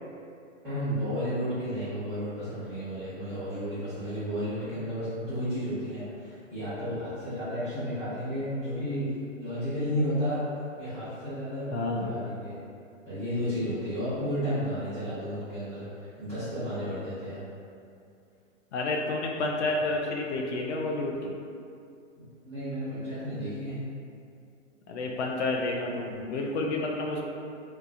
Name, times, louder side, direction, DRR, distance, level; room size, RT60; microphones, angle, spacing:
voice 1, 0.6-9.1 9.4-12.6 13.0-17.4 22.2-23.8, equal, 5° right, -17 dB, 0.3 m, -32 dB
voice 2, 11.7-12.2 18.7-21.4 24.9-27.2, left 2 dB, 60° left, 0 dB, 0.5 m, -30 dB
2.6 x 2.3 x 2.5 m, 2.5 s
hypercardioid pair, 150°, 38 cm